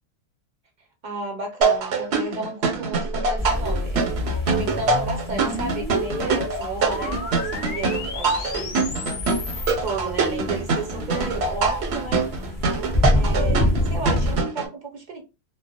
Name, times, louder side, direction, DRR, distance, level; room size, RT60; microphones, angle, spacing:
voice 1, 1.0-9.0 9.3-12.3 13.1-15.2, right 3 dB, 50° right, 0.6 m, -33 dB
sound 1, 1.6-14.7, right 4 dB, 80° right, 0.9 m, -24 dB
sound 2, 2.9-9.8, left 2 dB, 60° left, 0.6 m, -31 dB
sound 3, 3.4-14.4, left 1 dB, 20° left, 0.7 m, -28 dB
2.3 x 2.0 x 2.7 m
omnidirectional pair, 1.1 m